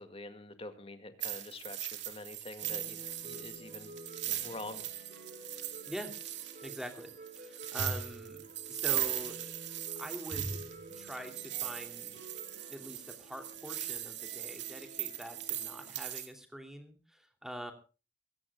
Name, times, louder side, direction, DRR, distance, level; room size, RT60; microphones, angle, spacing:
voice 1, 0.0-3.9 4.3-4.9, left 2 dB, 30° left, 8 dB, 2.1 m, -46 dB
sound 1, 1.2-16.3, right 11 dB, 70° right, 2.4 m, -39 dB
sound 2, 2.6-15.9, right 2 dB, 45° right, 5.5 m, -52 dB
voice 2, 6.6-7.1 7.4-9.4 10.0-10.6 10.9-12.2 12.7-17.7, equal, ahead, 5 dB, 2.7 m, -44 dB
23.0 x 16.5 x 2.4 m, 0.33 s
head